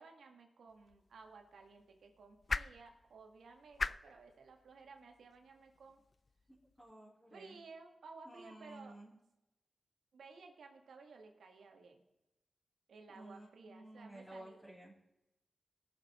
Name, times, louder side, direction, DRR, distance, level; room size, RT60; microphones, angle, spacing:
voice 1, 0.0-6.0 7.3-9.0 10.1-12.0 12.9-14.6, right 4 dB, 85° right, 4 dB, 1.7 m, -56 dB
sound 1, 0.7-6.9, left 3 dB, 45° left, 0.4 m, -45 dB
voice 2, 6.5-7.6 8.2-9.2 13.1-15.0, right 1 dB, 10° left, -7 dB, 3.6 m, -54 dB
18.5 x 6.8 x 4.3 m, 0.94 s
cardioid pair, 65°, 0 cm